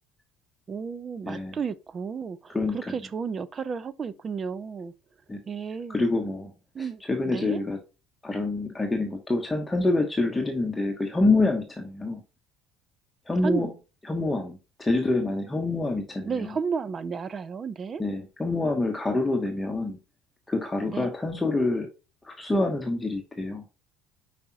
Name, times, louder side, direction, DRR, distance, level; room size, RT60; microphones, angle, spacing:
voice 1, 0.7-4.9 5.5-6.0 6.7-7.6 13.4-13.7 16.2-18.0 20.9-21.1, right 6 dB, 30° right, 0.7 m, -32 dB
voice 2, 1.2-1.6 2.5-2.9 5.3-5.4 5.9-6.5 6.8-7.8 8.2-12.2 13.3-13.7 14.0-16.6 18.0-20.0 20.5-21.9 22.2-23.6, left 2 dB, 10° left, 1.1 m, -26 dB
5.3 x 5.0 x 5.9 m
cardioid pair, 120°, 0 cm